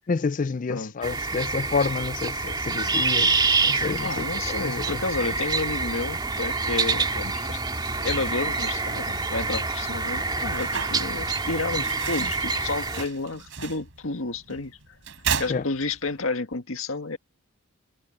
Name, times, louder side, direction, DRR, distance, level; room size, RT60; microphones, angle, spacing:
voice 1, 0.1-3.4 3.6-5.0 15.5-15.6, left 4 dB, 40° left, 0.4 m, -29 dB
voice 2, 0.7-1.1 4.0-7.6 8.0-14.8 15.4-17.2, left 3 dB, 75° left, 1.8 m, -31 dB
sound 1, 1.0-13.1, right 4 dB, 20° right, 2.2 m, -27 dB
sound 2, 7.8-16.2, right 6 dB, 65° right, 5.5 m, -36 dB
head